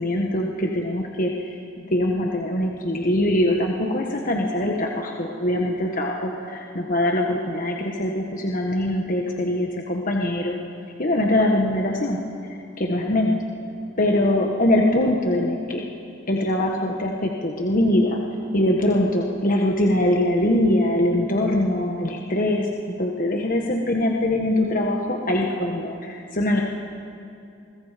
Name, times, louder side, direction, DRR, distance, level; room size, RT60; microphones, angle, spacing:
voice 1, 0.0-10.5 11.0-12.2 12.8-13.4 14.0-15.9 16.3-18.2 18.5-22.7 23.0-26.6, left 1 dB, 45° left, 0 dB, 1.5 m, -22 dB
27.5 x 22.5 x 5.2 m, 2.6 s
head